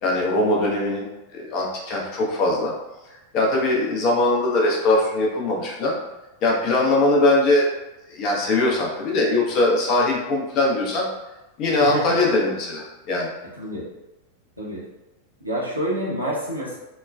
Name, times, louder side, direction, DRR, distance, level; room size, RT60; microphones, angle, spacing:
voice 1, 0.0-1.1 1.3-2.7 3.3-6.0 6.4-7.7 8.1-11.1 11.6-13.3, left 2 dB, 40° left, -1 dB, 0.6 m, -21 dB
voice 2, 11.8-12.2 13.6-13.9 14.6-14.8 15.4-16.8, equal, 90° right, -6 dB, 0.8 m, -28 dB
3.0 x 2.2 x 2.2 m, 0.99 s
figure-of-eight pair, 90°, 0 cm